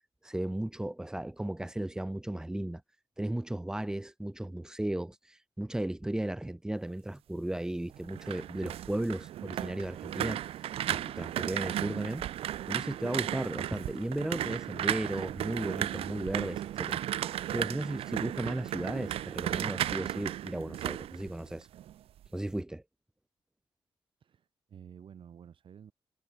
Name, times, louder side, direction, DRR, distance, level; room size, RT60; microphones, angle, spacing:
voice 1, 0.2-2.8 3.2-10.4 10.9-12.2 12.7-17.0 17.5-21.7 22.3-22.8, right 1 dB, 5° right, 0.3 m, -35 dB
sound 1, 7.9-21.9 22.2-22.6, right 12 dB, 90° right, 0.5 m, -35 dB
voice 2, 24.2-25.9, right 8 dB, 65° right, 7.7 m, -51 dB
cardioid pair, 120°, 10 cm